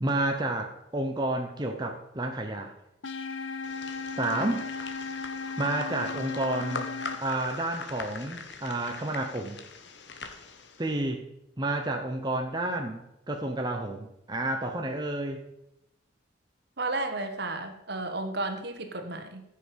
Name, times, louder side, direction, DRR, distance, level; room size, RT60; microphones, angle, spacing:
voice 1, 0.0-2.7 4.2-4.6 5.6-6.9 7.2-9.6 10.8-11.2 11.6-15.4, right 2 dB, 20° right, 3 dB, 0.9 m, -30 dB
sound 1, 3.0-7.2, left 4 dB, 85° left, 0.9 m, -36 dB
sound 2, 3.6-10.9, left 4 dB, 65° left, 1.3 m, -42 dB
voice 2, 16.8-19.4, right 2 dB, 60° right, 6 dB, 1.5 m, -33 dB
15.0 x 6.6 x 5.3 m, 0.85 s
head